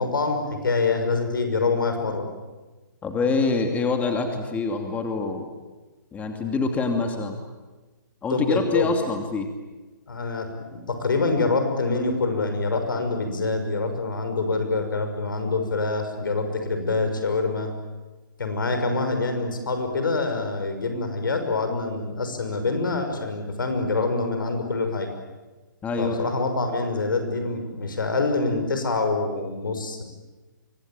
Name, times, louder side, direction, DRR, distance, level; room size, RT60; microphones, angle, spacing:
voice 1, 0.0-2.3 8.3-8.9 10.1-17.7 18.4-25.1 26.0-30.0, left 3 dB, 80° left, 6 dB, 6.2 m, -25 dB
voice 2, 3.0-5.5 6.1-7.4 8.2-9.5 25.8-26.3, left 3 dB, 15° left, 4 dB, 2.7 m, -25 dB
25.5 x 24.5 x 9.0 m, 1.2 s
hypercardioid pair, 140°, 11 cm